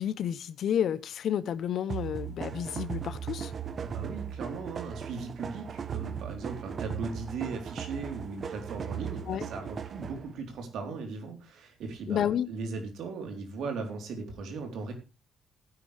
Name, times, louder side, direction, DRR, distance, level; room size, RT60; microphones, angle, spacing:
voice 1, 0.0-3.5 9.3-9.4 12.1-12.5, left 9 dB, 70° left, 0.8 m, -30 dB
sound 1, 1.9-10.3, right 8 dB, 50° right, 1.1 m, -37 dB
voice 2, 3.8-14.9, right 4 dB, 75° right, 3.7 m, -38 dB
15.5 x 9.6 x 3.4 m
cardioid pair, 90°, 0 cm